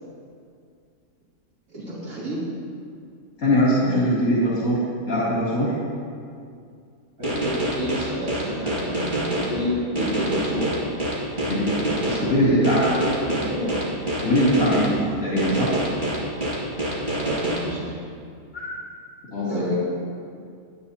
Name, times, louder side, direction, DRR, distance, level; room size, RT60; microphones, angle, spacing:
voice 1, 1.7-2.5 7.2-10.7 11.9-13.8 17.1-17.9 19.5-19.7, equal, 70° right, -10 dB, 4.0 m, -29 dB
voice 2, 3.4-5.7 11.4-11.7 12.1-12.8 14.2-15.8 18.5-18.7 19.3-19.7, equal, 70° left, -10 dB, 3.4 m, -21 dB
sound 1, 7.2-9.5 10.0-12.2 12.6-14.9 15.4-17.6, right 1 dB, 35° right, 2.4 m, -26 dB
22.0 x 8.8 x 2.9 m, 2.3 s
omnidirectional pair, 1.5 m